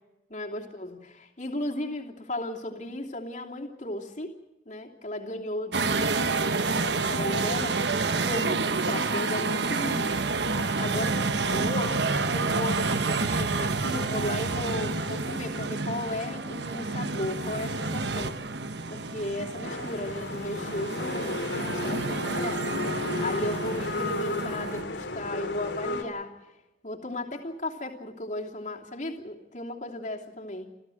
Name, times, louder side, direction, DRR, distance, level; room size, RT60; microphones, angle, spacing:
voice 1, 0.3-4.4 4.6-6.2 6.7-10.2 10.8-12.0 12.3-18.4 18.9-26.3 26.8-30.7, left 1 dB, 40° left, 0 dB, 3.0 m, -35 dB
sound 1, 5.7-24.8, right 3 dB, 70° right, 1.2 m, -29 dB
sound 2, 19.6-26.0, left 2 dB, 80° left, 3.0 m, -33 dB
29.0 x 14.5 x 7.9 m, 1.0 s
head